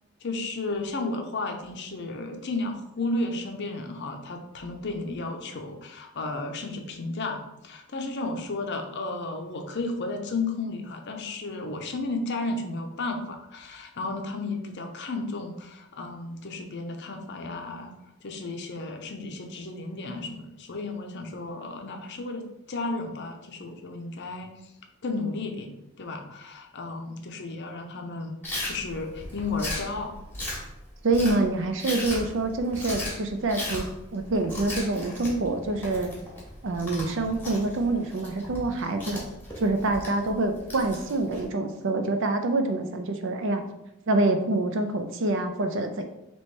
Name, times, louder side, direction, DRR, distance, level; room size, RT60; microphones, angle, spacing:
voice 1, 0.2-17.9 18.2-24.5 25.0-30.1, left 3 dB, 50° left, 4 dB, 0.6 m, -33 dB
Chewing mastication, 28.4-41.4, left 1 dB, 10° left, 1.1 m, -37 dB
voice 2, 31.0-33.8 34.1-36.1 36.6-39.2 39.6-43.6 44.1-46.0, right 2 dB, 55° right, 6 dB, 0.5 m, -26 dB
3.2 x 3.0 x 4.4 m, 0.86 s
head